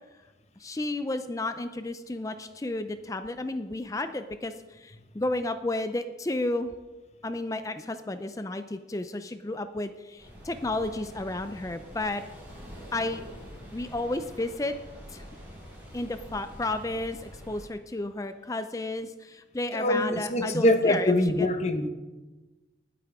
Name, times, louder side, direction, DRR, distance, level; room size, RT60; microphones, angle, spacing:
voice 1, 0.6-6.7 7.2-12.2 12.9-13.2 13.7-14.8 15.1-15.2 15.9-21.1 21.4-21.5, left 2 dB, 20° left, 9 dB, 0.4 m, -32 dB
sound 1, 10.2-17.6, equal, 10° right, 4.7 m, -46 dB
voice 2, 19.7-21.9, left 1 dB, 35° left, 7 dB, 1.0 m, -24 dB
19.5 x 8.4 x 3.6 m, 1.2 s
head